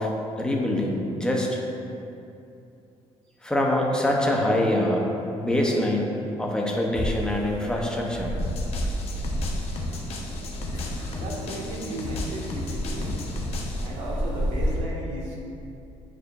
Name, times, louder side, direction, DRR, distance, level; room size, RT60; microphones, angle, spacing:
voice 1, 0.0-1.6 3.4-6.1 6.4-8.4, left 1 dB, 5° left, -1 dB, 0.7 m, -25 dB
sound 1, 6.9-14.8, equal, 35° left, 1.1 m, -31 dB
sound 2, 8.4-13.9, left 2 dB, 60° left, 0.8 m, -35 dB
voice 2, 11.1-13.2 13.8-15.4, right 1 dB, 75° right, -4 dB, 1.4 m, -35 dB
9.4 x 4.9 x 2.5 m, 2.7 s
cardioid pair, 150°, 12 cm